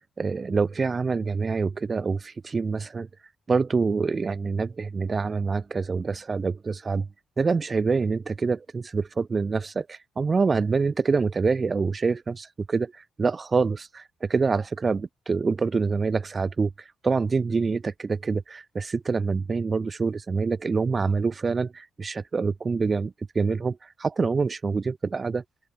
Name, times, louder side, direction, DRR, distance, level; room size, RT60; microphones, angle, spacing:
voice 1, 0.2-3.1 3.5-7.1 7.4-16.7 17.0-25.4, right 4 dB, 40° right, 0.6 m, -26 dB
open air
supercardioid pair, 50°, 0 cm